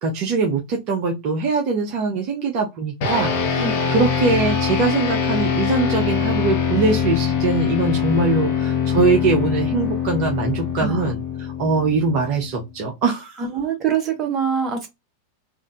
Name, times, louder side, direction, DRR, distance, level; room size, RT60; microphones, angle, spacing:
voice 1, 0.0-13.4, right 4 dB, 40° right, 0.8 m, -22 dB
sound 1, 3.0-12.6, left 7 dB, 50° left, 0.8 m, -23 dB
voice 2, 10.8-11.1 13.4-14.9, right 7 dB, 25° right, 1.1 m, -24 dB
3.5 x 2.6 x 2.4 m
figure-of-eight pair, 90°, 0 cm